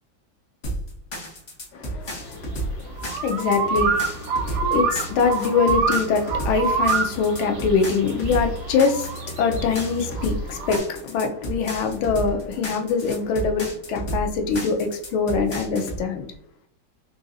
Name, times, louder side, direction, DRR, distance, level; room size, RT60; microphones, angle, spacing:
sound 1, 0.6-16.0, right 1 dB, 55° left, 0.7 m, -32 dB
voice 1, 1.7-16.2, left 5 dB, 85° left, 1.5 m, -24 dB
sound 2, 2.2-10.8, right 5 dB, 85° right, 1.5 m, -27 dB
3.9 x 2.6 x 2.5 m
omnidirectional pair, 2.2 m